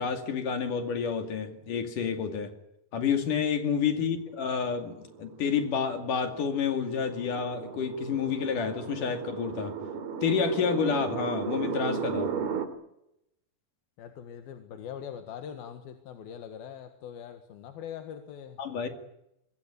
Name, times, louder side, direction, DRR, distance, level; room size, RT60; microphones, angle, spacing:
voice 1, 0.0-2.5 2.9-9.8 10.2-12.3 18.6-18.9, left 6 dB, 60° left, 7 dB, 3.8 m, -29 dB
sound 1, 4.6-12.7, right 6 dB, 90° right, 4.3 m, -36 dB
voice 2, 14.0-18.6, left 8 dB, 80° left, 7 dB, 3.5 m, -42 dB
25.0 x 22.0 x 8.5 m, 0.83 s
omnidirectional pair, 4.2 m